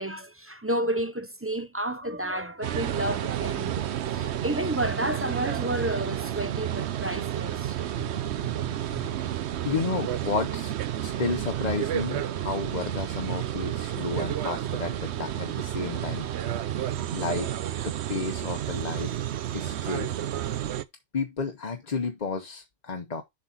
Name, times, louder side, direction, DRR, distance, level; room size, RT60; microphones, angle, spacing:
voice 1, 0.0-9.3, right 1 dB, 20° right, 0.4 m, -32 dB
sound 1, 2.6-20.8, right 11 dB, 70° right, 0.9 m, -31 dB
voice 2, 9.6-10.7 11.0-16.3 17.1-17.5 17.8-19.2 19.5-20.1 21.1-23.2, left 4 dB, 40° left, 1.0 m, -32 dB
7.1 x 4.2 x 5.7 m
omnidirectional pair, 1.2 m